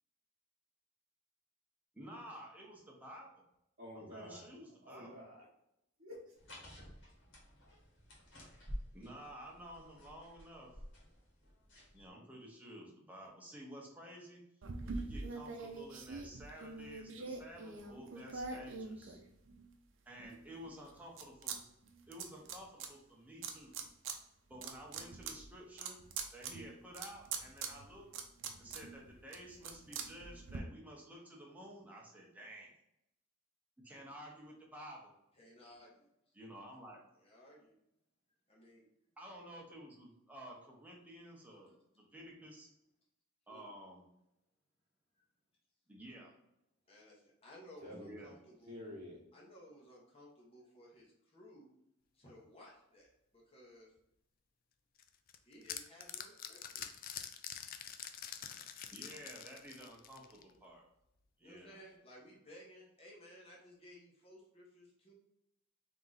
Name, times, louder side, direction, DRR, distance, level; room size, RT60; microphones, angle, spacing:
voice 1, 1.9-3.3 3.9-5.1 8.9-10.7 11.9-14.4 14.8-19.2 20.1-21.6 22.1-23.7 24.5-26.0 26.3-28.1 28.6-32.7 33.8-35.1 36.3-37.0 39.2-42.7 43.5-44.0 45.9-46.3 47.9-48.3 58.9-60.8 61.4-61.8, equal, 10° right, -2 dB, 1.0 m, -52 dB
voice 2, 3.8-4.5 4.8-5.5 6.0-6.3 47.8-48.2 48.7-49.2, left 1 dB, 45° right, -9 dB, 1.1 m, -49 dB
sound 1, 6.4-12.1, equal, 65° left, 1.5 m, -51 dB
sound 2, 14.6-19.7 20.2-21.6 21.8-22.9 23.4-24.2 24.5-30.6, right 4 dB, 65° right, 0.6 m, -44 dB
voice 3, 35.3-36.3 37.1-37.7 38.5-38.9 41.6-41.7 43.5-43.7 45.1-45.3 46.9-48.8 49.3-51.7 52.1-53.9 55.4-57.0 61.4-65.1, equal, 30° left, -4 dB, 1.2 m, -58 dB
sound 3, 55.0-60.5, left 9 dB, 45° left, 0.4 m, -46 dB
3.7 x 3.0 x 3.9 m, 0.82 s
head